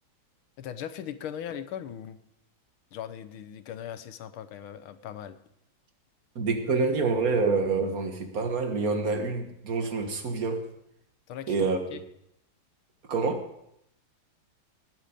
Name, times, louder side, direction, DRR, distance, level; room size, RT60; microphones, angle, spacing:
voice 1, 0.6-2.2 2.9-5.4 11.3-11.5 11.9-12.0, left 9 dB, 85° left, 1.7 m, -39 dB
voice 2, 6.4-10.6 11.5-12.0 13.1-13.5, right 4 dB, 45° right, 1.8 m, -27 dB
19.5 x 7.7 x 5.1 m
omnidirectional pair, 2.3 m